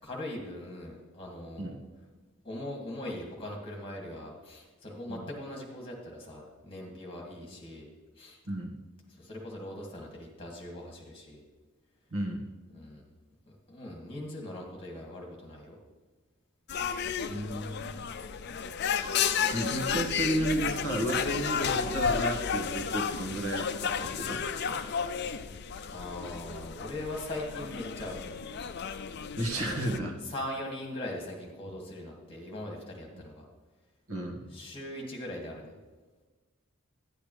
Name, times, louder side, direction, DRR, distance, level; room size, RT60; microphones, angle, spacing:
voice 1, 0.0-1.7 2.4-7.9 8.2-8.4 9.1-11.4 12.7-13.2 13.5-15.8 17.1-17.4 22.1-22.2 25.9-28.4 29.5-29.8 30.2-33.4 34.5-35.8, left 1 dB, 25° left, -1 dB, 2.2 m, -40 dB
sound 1, 16.7-30.0, left 7 dB, 50° left, 0.4 m, -32 dB
voice 2, 17.3-18.0 19.5-24.4 29.4-30.2 33.1-33.2 34.1-34.5, right 1 dB, 75° right, 2 dB, 1.6 m, -33 dB
10.5 x 10.0 x 3.3 m, 1.3 s
head